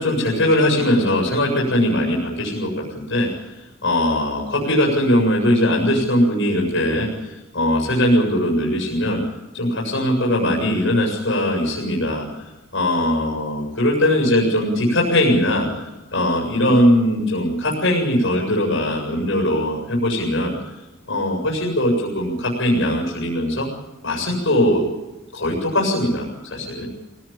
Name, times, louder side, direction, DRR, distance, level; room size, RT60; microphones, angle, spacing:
voice 1, 0.0-3.3 3.8-9.2 9.5-12.2 12.7-20.6 21.1-23.7 24.0-24.9 25.3-26.9, left 1 dB, 65° left, -2 dB, 7.3 m, -20 dB
24.5 x 17.5 x 8.9 m, 1.1 s
head